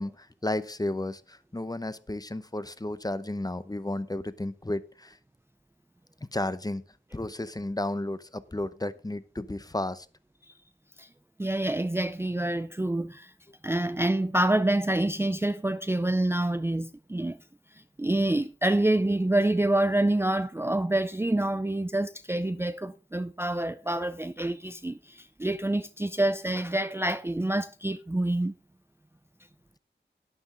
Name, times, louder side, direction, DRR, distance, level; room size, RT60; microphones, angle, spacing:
voice 1, 0.0-5.2 6.3-6.8 7.1-10.1, left 1 dB, 20° left, 0.8 m, -33 dB
voice 2, 11.4-13.3 13.6-17.4 18.0-28.6, right 1 dB, 15° right, 0.5 m, -27 dB
11.5 x 9.6 x 3.9 m
wide cardioid pair, 85°, 19 cm